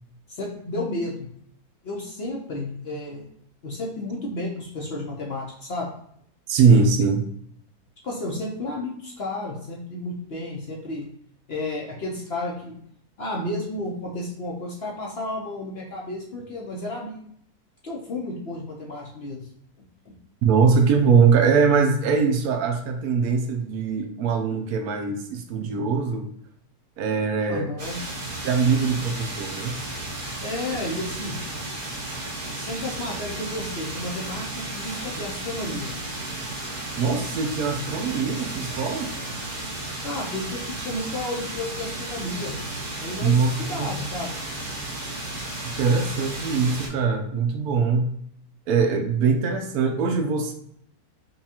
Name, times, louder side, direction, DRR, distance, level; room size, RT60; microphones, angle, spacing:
voice 1, 0.3-1.3 1.8-3.2 3.6-5.9 8.0-11.1 11.5-12.8 13.2-17.2 17.8-19.4 20.0-20.1 27.5-28.0 30.4-31.3 32.5-35.9 40.0-42.6 43.0-44.3, left 2 dB, 50° left, -2 dB, 0.8 m, -32 dB
voice 2, 6.5-7.2 20.4-26.3 27.0-27.7 28.4-29.8 37.0-39.1 43.2-43.9 45.6-48.1 48.7-50.5, right 5 dB, 75° right, 5 dB, 1.1 m, -22 dB
sound 1, 27.8-46.9, right 2 dB, 30° right, 1.0 m, -34 dB
5.3 x 2.3 x 2.8 m, 0.68 s
omnidirectional pair, 1.7 m